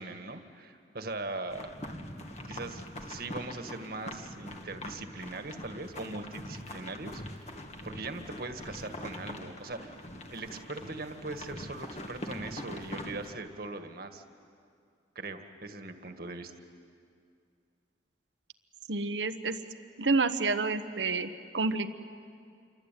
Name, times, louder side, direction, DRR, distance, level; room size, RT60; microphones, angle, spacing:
voice 1, 0.0-1.7 2.5-7.2 7.8-9.9 10.3-14.2 15.2-16.5, right 2 dB, 55° right, 7 dB, 1.8 m, -40 dB
sound 1, 1.5-13.3, left 1 dB, 40° left, 2.0 m, -43 dB
voice 2, 18.9-19.6 20.0-21.9, right 3 dB, 90° right, 8 dB, 1.3 m, -29 dB
27.5 x 23.5 x 9.2 m, 2.3 s
head